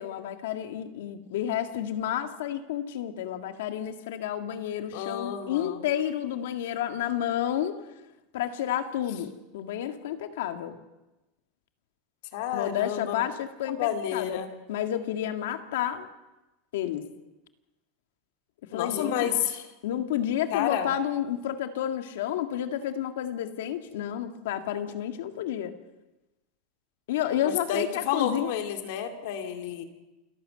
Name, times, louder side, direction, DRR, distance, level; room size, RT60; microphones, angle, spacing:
voice 1, 0.0-7.8 8.3-10.8 12.5-14.4 14.7-16.1 16.7-17.1 18.7-19.3 19.8-25.7 27.1-28.5, left 11 dB, 80° left, 7 dB, 1.9 m, -30 dB
voice 2, 4.9-5.8 12.3-13.2 13.6-14.5 18.7-19.7 20.5-20.9 27.4-29.8, left 9 dB, 60° left, 5 dB, 2.4 m, -30 dB
28.0 x 12.0 x 7.8 m, 1.0 s
supercardioid pair, 170°, 0 cm